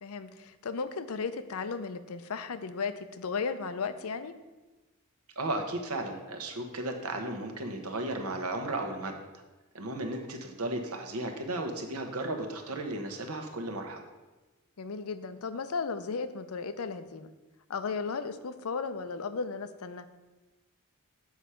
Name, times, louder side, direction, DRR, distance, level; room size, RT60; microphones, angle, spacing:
voice 1, 0.0-4.3 14.8-17.3 17.7-20.1, left 5 dB, 70° left, 12 dB, 0.5 m, -35 dB
voice 2, 5.4-9.1 9.7-14.0, right 2 dB, 80° right, 4 dB, 1.1 m, -34 dB
7.2 x 4.9 x 5.6 m, 1.1 s
head